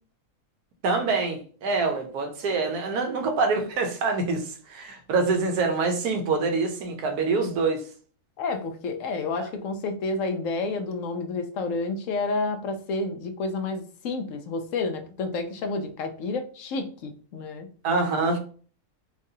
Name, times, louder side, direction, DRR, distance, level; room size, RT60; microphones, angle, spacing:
voice 1, 0.8-7.8 9.4-9.5 17.8-18.4, right 4 dB, 85° right, 1.3 m, -25 dB
voice 2, 8.4-17.7, left 3 dB, 70° left, 0.9 m, -30 dB
4.6 x 2.4 x 2.7 m
omnidirectional pair, 1.6 m